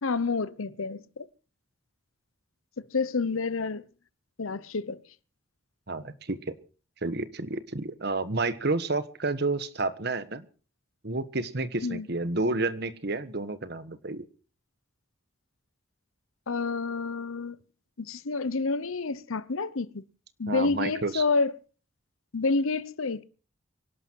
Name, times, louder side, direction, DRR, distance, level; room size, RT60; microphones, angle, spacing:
voice 1, 0.0-1.3 2.8-3.8 4.4-5.0 11.8-12.1 16.5-17.6 18.0-20.0 20.4-21.5 22.3-23.2, left 4 dB, 80° left, 0.8 m, -29 dB
voice 2, 5.9-6.5 7.0-10.5 11.0-14.3 20.5-21.2, right 2 dB, 50° right, 1.4 m, -30 dB
25.0 x 12.0 x 4.6 m
head